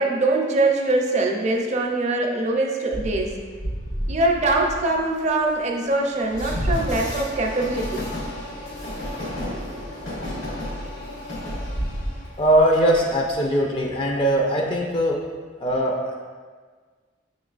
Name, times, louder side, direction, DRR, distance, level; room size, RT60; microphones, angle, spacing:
voice 1, 0.0-3.4 4.1-8.1, right 2 dB, 40° right, 1 dB, 0.5 m, -23 dB
Train, 2.9-13.3, equal, 90° left, 1.3 m, -31 dB
voice 2, 12.4-15.2 15.6-16.1, right 1 dB, 25° left, -1 dB, 0.4 m, -20 dB
6.5 x 3.0 x 2.4 m, 1.5 s
head